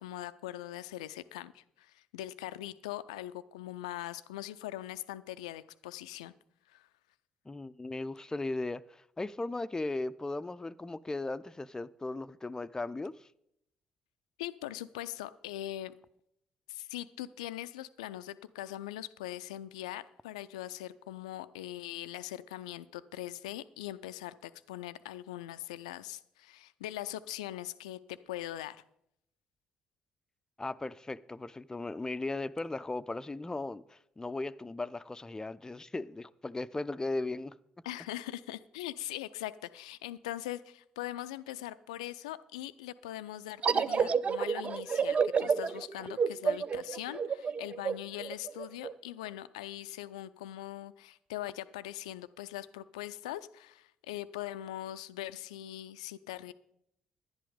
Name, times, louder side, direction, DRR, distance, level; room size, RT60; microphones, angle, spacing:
voice 1, 0.0-6.3 6.7-6.9 14.4-15.9 16.7-28.8 37.8-56.5, left 14 dB, 80° left, 0.4 m, -41 dB
voice 2, 7.5-13.3 30.6-37.6, left 2 dB, 15° left, 0.5 m, -37 dB
sound 1, 43.6-48.9, right 6 dB, 35° right, 0.4 m, -30 dB
11.0 x 10.5 x 5.0 m
figure-of-eight pair, 45°, 4 cm